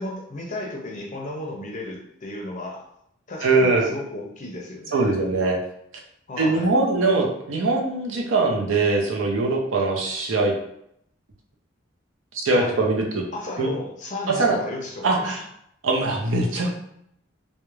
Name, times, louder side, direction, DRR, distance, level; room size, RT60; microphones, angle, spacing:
voice 1, 0.0-2.8 3.3-5.2 6.3-6.7 12.5-12.8 13.3-15.1, left 2 dB, 35° left, 0 dB, 0.5 m, -34 dB
voice 2, 3.4-3.9 4.9-5.6 6.4-10.5 12.4-13.3 13.6-13.7 14.4-14.6 15.0-15.4 15.8-16.7, right 3 dB, 70° right, 0 dB, 0.5 m, -22 dB
2.3 x 2.1 x 3.0 m, 0.74 s
head